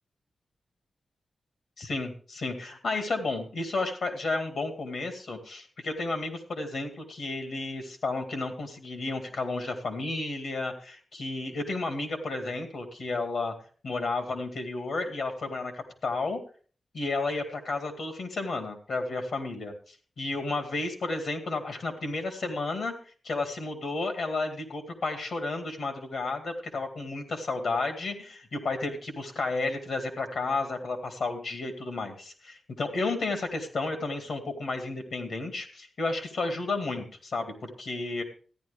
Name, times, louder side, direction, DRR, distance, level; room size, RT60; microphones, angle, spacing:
voice 1, 1.8-13.5 13.8-16.4 16.9-22.9 23.2-38.2, left 3 dB, 75° left, 6 dB, 2.2 m, -32 dB
14.0 x 10.0 x 3.4 m, 0.41 s
wide cardioid pair, 115°, 0 cm